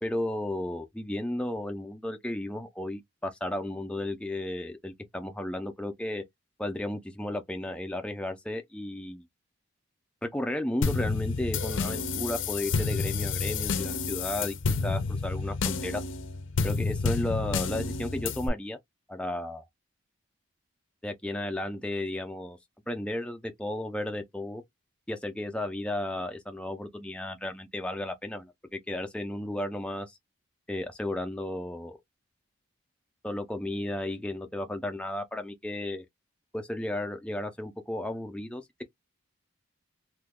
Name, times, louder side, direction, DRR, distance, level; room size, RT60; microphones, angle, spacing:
voice 1, 0.0-6.2 6.6-9.2 10.2-14.5 14.8-16.0 16.6-18.8 19.1-19.6 21.0-22.6 22.9-24.6 25.1-30.2 30.7-32.0 33.2-36.1 36.5-38.8, left 1 dB, 5° left, 0.4 m, -34 dB
sound 1, 10.8-18.5, left 4 dB, 65° left, 0.5 m, -30 dB
2.9 x 2.2 x 3.5 m
head